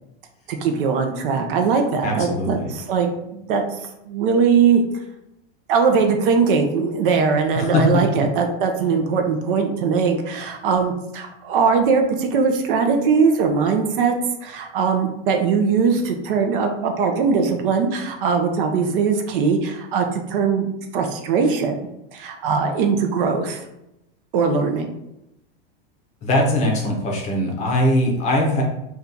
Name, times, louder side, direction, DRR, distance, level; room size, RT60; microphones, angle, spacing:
voice 1, 0.5-3.8 4.1-4.8 5.7-14.1 14.4-20.7 20.9-23.6 24.3-24.9, right 5 dB, 65° right, 4 dB, 0.5 m, -20 dB
voice 2, 2.0-2.7 7.5-8.0 26.2-28.6, left 1 dB, 25° left, 0 dB, 0.6 m, -21 dB
2.7 x 2.3 x 3.6 m, 0.86 s
supercardioid pair, 155°, 29 cm